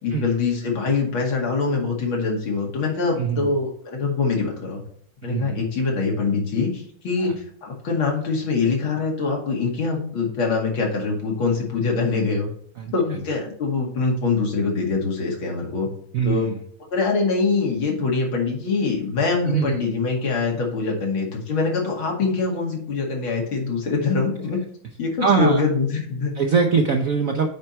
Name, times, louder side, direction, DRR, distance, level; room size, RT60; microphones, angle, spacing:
voice 1, 0.0-4.8 5.2-7.3 7.6-12.5 12.9-15.9 16.2-16.5 16.9-24.6 25.0-26.3, left 4 dB, 75° left, -1 dB, 2.9 m, -24 dB
voice 2, 3.2-3.5 5.3-5.6 7.2-7.3 12.8-13.2 16.1-16.4 19.4-19.7 25.2-25.6 26.4-27.5, right 5 dB, 65° right, 4 dB, 0.8 m, -22 dB
8.9 x 4.5 x 4.4 m, 0.63 s
omnidirectional pair, 2.3 m